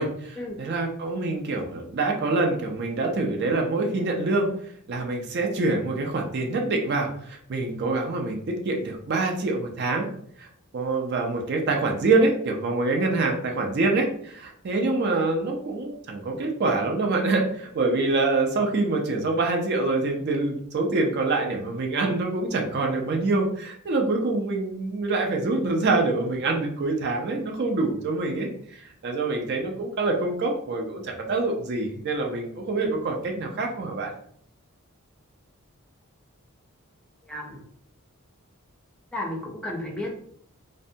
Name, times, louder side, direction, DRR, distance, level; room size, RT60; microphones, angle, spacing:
voice 1, 0.0-4.5 4.9-10.1 10.4-10.5 10.7-34.1, right 3 dB, 50° right, 2 dB, 0.4 m, -25 dB
voice 2, 37.3-37.6 39.1-40.2, left 1 dB, 5° left, -2 dB, 0.5 m, -33 dB
2.6 x 2.1 x 2.6 m, 0.63 s
head